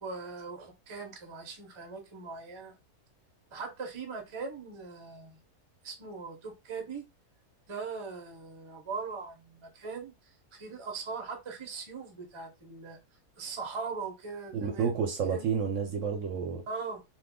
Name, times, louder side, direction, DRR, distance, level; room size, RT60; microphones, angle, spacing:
voice 1, 0.0-2.7 3.5-5.4 5.8-7.1 7.7-13.0 13.4-14.9 15.3-15.5 16.7-17.0, right 4 dB, 40° right, 0.4 m, -40 dB
voice 2, 14.5-16.6, right 6 dB, 65° right, 0.8 m, -30 dB
2.7 x 2.4 x 3.6 m
omnidirectional pair, 1.7 m